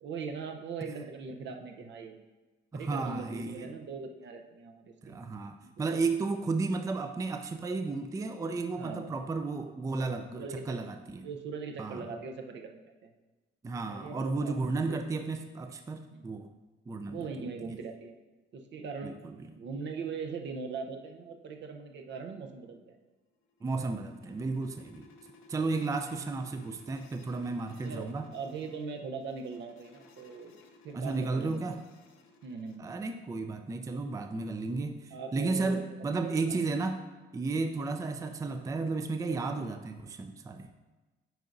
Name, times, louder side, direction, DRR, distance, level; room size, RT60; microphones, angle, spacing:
voice 1, 0.0-2.2 2.7-5.2 5.6-6.0 8.8-9.1 10.3-10.8 11.2-13.1 13.9-15.0 16.1-16.3 17.1-18.1 18.5-19.1 19.6-23.0 27.8-30.6 30.8-31.6 32.4-32.9 35.1-36.1 36.5-36.6, right 4 dB, 65° right, 3 dB, 0.7 m, -40 dB
voice 2, 2.7-3.7 5.0-11.3 11.8-12.1 13.6-16.5 16.9-17.3 19.0-19.4 23.6-25.1 25.5-28.3 30.9-31.8 32.8-37.0 37.3-40.7, right 3 dB, 15° right, 6 dB, 0.4 m, -33 dB
sound 1, 23.3-32.8, left 3 dB, 85° left, 0.7 m, -58 dB
9.0 x 4.6 x 2.6 m, 1.2 s
cardioid pair, 90°, 20 cm